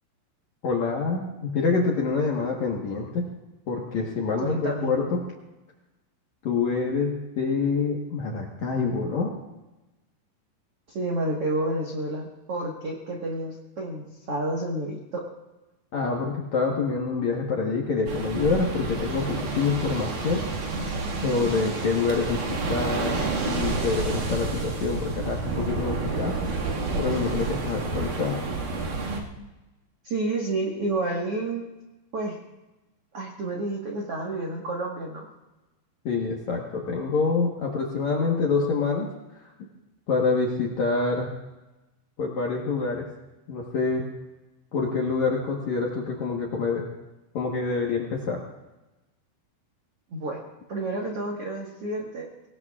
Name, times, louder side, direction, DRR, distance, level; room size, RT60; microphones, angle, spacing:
voice 1, 0.6-3.3 3.7-5.2 6.4-9.3 15.9-20.4 21.2-26.4 27.0-28.4 36.1-39.1 39.4-39.5 40.1-41.3 42.2-43.1 43.5-44.1 44.7-46.8 47.3-48.4, left 4 dB, 65° left, -2 dB, 1.8 m, -26 dB
voice 2, 4.4-4.9 10.9-15.2 30.0-31.7 32.1-32.4 33.1-35.3 50.1-50.4 50.7-52.5, right 2 dB, 75° right, -1 dB, 1.3 m, -30 dB
sound 1, 18.1-29.2, right 3 dB, 55° right, 3.0 m, -29 dB
25.0 x 18.0 x 2.4 m, 1.1 s
omnidirectional pair, 5.2 m